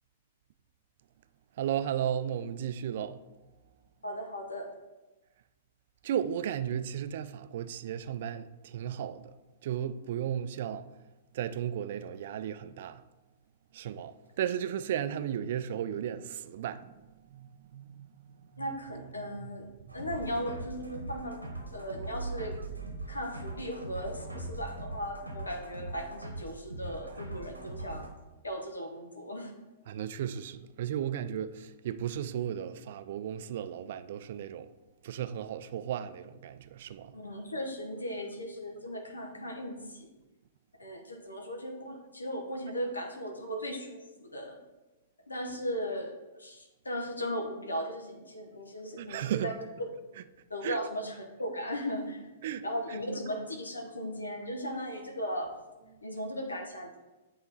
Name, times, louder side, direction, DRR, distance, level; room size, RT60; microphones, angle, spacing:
voice 1, 1.6-3.2 6.0-9.3 9.6-10.9 11.3-13.0 13.7-16.9 17.3-19.5 29.9-34.7 35.0-37.2 49.0-49.6 50.1-50.3 50.6-50.8 52.4-53.0, right 9 dB, 50° right, 0.3 m, -35 dB
voice 2, 4.0-4.7 18.6-19.7 19.9-21.4 21.7-22.6 23.1-28.1 28.4-29.5 37.1-40.1 40.8-44.6 45.3-46.1 46.4-49.5 49.8-49.9 50.5-52.3 52.6-55.5 56.0-57.0, equal, 80° left, 0.9 m, -37 dB
sound 1, 19.9-28.1, right 2 dB, 90° right, 1.1 m, -41 dB
8.6 x 2.9 x 4.0 m
figure-of-eight pair, 105°, 0 cm